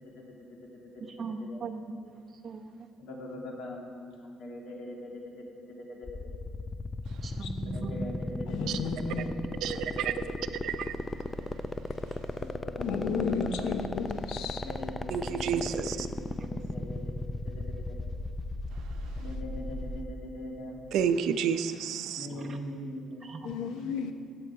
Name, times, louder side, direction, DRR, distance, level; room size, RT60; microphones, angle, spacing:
voice 1, 0.2-0.6 0.9-1.6 3.0-6.5 7.6-10.3 10.6-10.8 12.3-14.0 14.6-16.0 16.4-17.1 17.5-18.1 19.2-20.8 22.2-23.3, left 1 dB, 65° left, 0 dB, 2.2 m, -42 dB
voice 2, 1.2-2.9 7.2-8.1 22.2-22.6 23.2-23.9, right 4 dB, 35° right, 2 dB, 0.9 m, -40 dB
sound 1, 6.0-20.0, left 2 dB, 15° left, 0.4 m, -35 dB
voice 3, 8.5-9.3 12.8-14.6 23.4-24.1, left 5 dB, 85° left, 7 dB, 0.9 m, -32 dB
voice 4, 9.6-10.1 10.6-11.0 12.1-12.2 15.1-16.1 19.0-19.1 20.9-22.3, right 8 dB, 75° right, 10 dB, 0.6 m, -30 dB
15.5 x 7.9 x 4.7 m, 2.4 s
cardioid pair, 130°, 0 cm